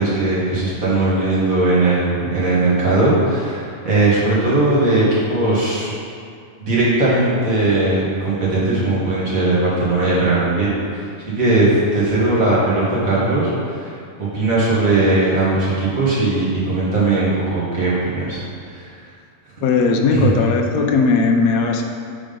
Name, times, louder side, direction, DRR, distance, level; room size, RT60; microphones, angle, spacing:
voice 1, 0.0-5.9 6.6-13.9 14.2-18.4 18.7-18.9 20.1-20.3, right 2 dB, 70° right, -9 dB, 2.2 m, -18 dB
voice 2, 19.6-21.8, left 4 dB, 75° left, 3 dB, 1.0 m, -17 dB
6.1 x 3.8 x 5.1 m, 2.4 s
omnidirectional pair, 1.5 m